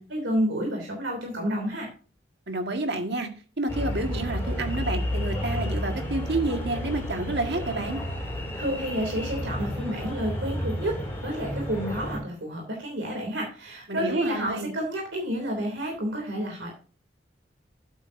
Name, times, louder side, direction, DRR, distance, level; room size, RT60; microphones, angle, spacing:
voice 1, 0.1-1.9 8.5-11.0 11.2-16.7, equal, 85° right, 1 dB, 3.0 m, -30 dB
voice 2, 2.5-3.3 3.6-8.0 13.9-14.7, right 2 dB, 65° right, 5 dB, 1.8 m, -29 dB
sound 1, 3.7-12.2, equal, 15° left, 3.8 m, -31 dB
11.0 x 8.8 x 2.7 m, 0.37 s
head